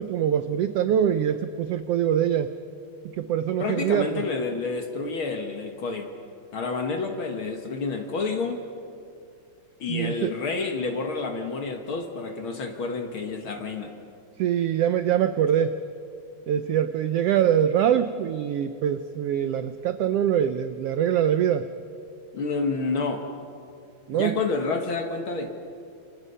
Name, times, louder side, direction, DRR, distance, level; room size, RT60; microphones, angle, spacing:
voice 1, 0.0-2.5 3.2-4.2 9.9-10.3 14.4-15.8 16.5-21.7 24.1-24.4, right 9 dB, 85° right, 10 dB, 1.3 m, -24 dB
voice 2, 3.6-6.1 6.5-8.7 9.8-13.9 22.3-23.2 24.1-25.5, left 4 dB, 50° left, 5 dB, 1.9 m, -29 dB
28.5 x 27.0 x 5.6 m, 2.5 s
omnidirectional pair, 3.6 m